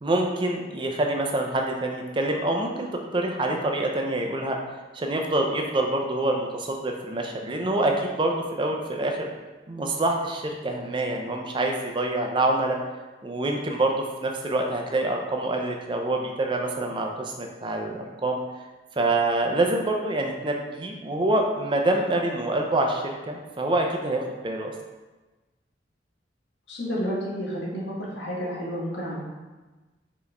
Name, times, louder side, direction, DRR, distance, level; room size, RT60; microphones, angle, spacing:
voice 1, 0.0-2.9 3.1-4.6 4.9-9.3 9.7-12.8 13.2-18.4 19.0-24.7, right 2 dB, 25° right, 2 dB, 0.4 m, -26 dB
voice 2, 26.7-29.2, equal, 85° left, -5 dB, 1.3 m, -30 dB
4.6 x 3.0 x 3.3 m, 1.2 s
head